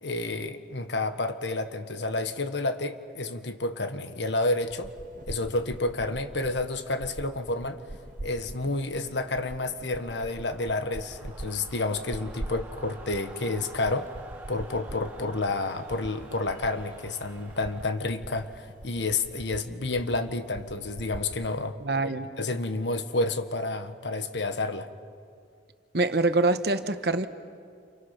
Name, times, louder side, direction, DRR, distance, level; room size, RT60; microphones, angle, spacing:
voice 1, 0.0-4.9 5.3-7.8 8.2-14.1 14.5-21.8 22.0-22.1 22.4-24.9, left 2 dB, 80° left, 8 dB, 1.5 m, -30 dB
sound 1, 4.6-21.6, right 1 dB, 45° right, 0.8 m, -44 dB
sound 2, 8.0-17.9, right 3 dB, 15° right, 4.8 m, -49 dB
voice 2, 21.8-22.3 25.9-27.3, right 2 dB, 60° right, 9 dB, 1.2 m, -25 dB
29.5 x 29.5 x 5.9 m, 2.2 s
head